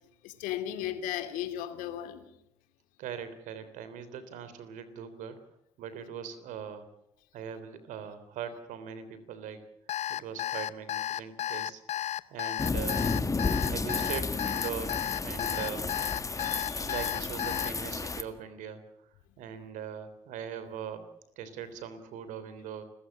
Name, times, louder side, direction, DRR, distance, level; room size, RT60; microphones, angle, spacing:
voice 1, 0.2-2.3 15.5-15.7 16.4-17.1, left 11 dB, 65° left, 9 dB, 2.5 m, -37 dB
voice 2, 3.0-5.4 5.8-6.8 7.3-9.6 10.1-11.8 12.3-13.1 13.7-15.9 16.8-18.8 19.4-21.0 21.4-22.8, right 8 dB, 60° right, 12 dB, 3.3 m, -40 dB
Alarm, 9.9-17.7, left 12 dB, 50° left, 0.9 m, -33 dB
sound 1, 12.6-18.2, left 3 dB, 20° left, 1.8 m, -32 dB
29.5 x 15.0 x 7.6 m, 0.81 s
hypercardioid pair, 55°, 14 cm